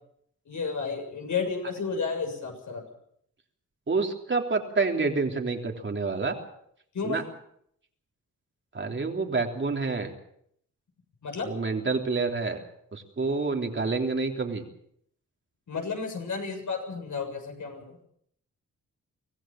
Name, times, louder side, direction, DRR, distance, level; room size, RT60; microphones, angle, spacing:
voice 1, 0.5-2.8 6.9-7.2 11.2-11.5 15.7-18.0, left 5 dB, 65° left, 3 dB, 7.3 m, -32 dB
voice 2, 3.9-6.4 7.0-7.2 8.7-10.1 11.4-12.6 12.9-14.6, right 4 dB, 35° right, 3 dB, 3.4 m, -28 dB
24.5 x 16.5 x 7.6 m, 0.70 s
cardioid pair, 90°, 32 cm